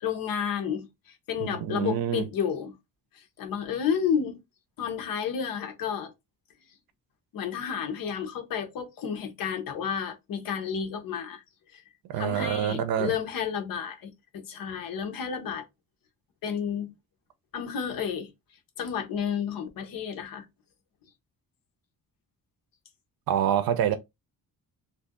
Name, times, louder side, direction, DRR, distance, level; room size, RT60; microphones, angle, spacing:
voice 1, 0.0-2.7 3.1-4.4 4.8-6.1 7.3-11.4 11.7-11.8 12.2-15.6 16.4-16.9 17.5-18.3 18.8-20.4, left 7 dB, 70° left, 0.9 m, -31 dB
voice 2, 1.5-2.2 12.1-13.1 23.3-24.0, right 9 dB, 85° right, 0.6 m, -26 dB
2.6 x 2.5 x 3.5 m
cardioid pair, 175°, 35 cm